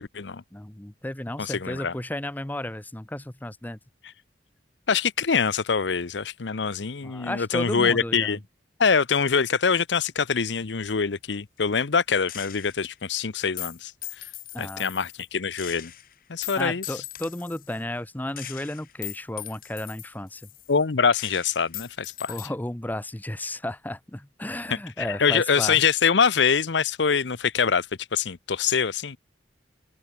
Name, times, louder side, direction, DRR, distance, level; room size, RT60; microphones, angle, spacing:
voice 1, 0.0-0.4 1.4-1.9 4.9-8.4 8.8-13.9 14.2-14.3 14.6-15.9 16.3-17.0 20.7-22.4 25.0-27.9 28.1-29.2, left 6 dB, 85° left, 0.8 m, -24 dB
voice 2, 0.5-3.8 7.0-8.4 14.5-14.9 16.6-20.5 22.3-25.8, left 1 dB, 10° left, 0.7 m, -33 dB
Gunshot gunfire, 12.3-12.9 13.6-15.3 15.6-17.8 18.4-20.8 21.1-22.5, left 15 dB, 55° left, 1.3 m, -40 dB
open air
head